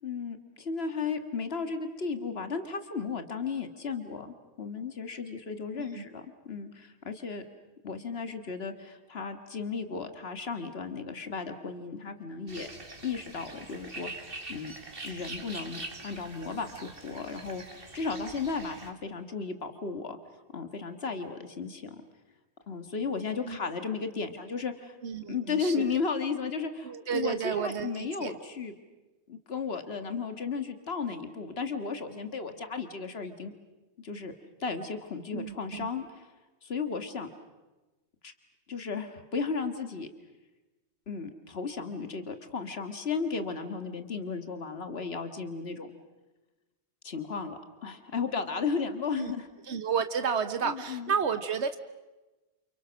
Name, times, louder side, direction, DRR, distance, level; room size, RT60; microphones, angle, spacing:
voice 1, 0.0-7.4 7.8-12.7 13.0-14.7 15.0-20.2 20.5-22.0 22.7-25.0 25.3-28.7 29.3-33.5 34.0-34.3 34.6-36.3 36.6-37.3 38.2-38.3 38.7-40.1 41.1-45.9 47.0-49.5 50.6-51.1, left 5 dB, 65° left, 8 dB, 2.1 m, -34 dB
sound 1, 12.5-18.9, right 2 dB, 55° right, 2.5 m, -44 dB
voice 2, 25.0-25.9 26.8-28.3 35.3-35.9 49.1-49.3 49.6-51.8, right 6 dB, 85° right, 10 dB, 1.4 m, -31 dB
29.0 x 29.0 x 6.4 m, 1.1 s
omnidirectional pair, 1.1 m